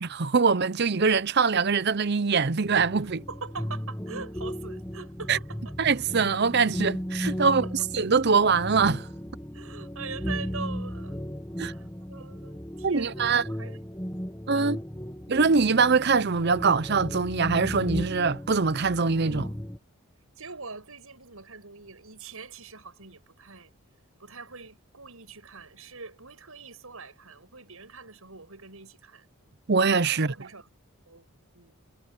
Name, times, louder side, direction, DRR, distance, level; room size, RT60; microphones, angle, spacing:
voice 1, 0.0-3.2 5.3-5.4 5.8-7.7 7.9-9.1 11.6-11.7 12.8-13.4 14.5-14.8 15.3-19.5 29.7-30.3, right 5 dB, 50° right, 0.7 m, -23 dB
sound 1, 2.6-19.8, equal, 10° left, 1.5 m, -35 dB
voice 2, 3.3-5.7 7.4-7.7 9.5-11.2 11.6-13.8 14.5-14.8 20.4-23.7 24.2-29.3 30.1-30.7 31.1-31.3 31.5-31.8, right 4 dB, 80° right, 7.0 m, -43 dB
head